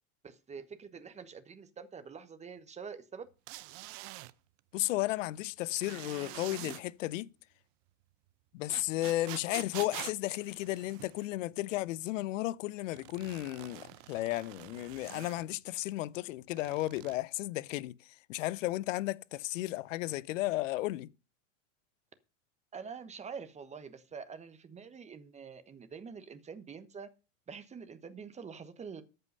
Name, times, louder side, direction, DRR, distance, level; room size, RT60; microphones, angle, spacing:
voice 1, 0.2-3.3 22.7-27.1 27.5-29.0, right 6 dB, 20° right, 1.1 m, -46 dB
sound 1, 3.5-4.3 5.8-6.8 8.7-11.3 12.9-15.4 16.5-17.2, right 20 dB, 45° right, 0.6 m, -46 dB
voice 2, 4.7-7.3 8.5-21.1, left 17 dB, 75° left, 0.6 m, -34 dB
13.5 x 5.5 x 5.4 m
supercardioid pair, 125°, 38 cm